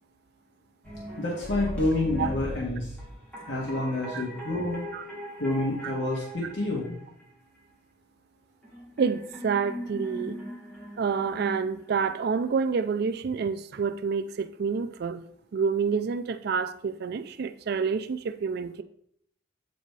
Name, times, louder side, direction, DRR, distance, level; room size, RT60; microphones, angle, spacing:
sound 1, 0.8-7.2 8.6-12.3, equal, 5° left, 2.0 m, -39 dB
voice 1, 1.2-2.9 3.5-4.9 5.4-7.0, left 2 dB, 80° left, -4 dB, 1.7 m, -28 dB
voice 2, 9.0-10.4 11.0-15.2 15.5-18.8, right 5 dB, 55° right, 11 dB, 0.4 m, -28 dB
8.1 x 4.1 x 4.7 m, 0.68 s
head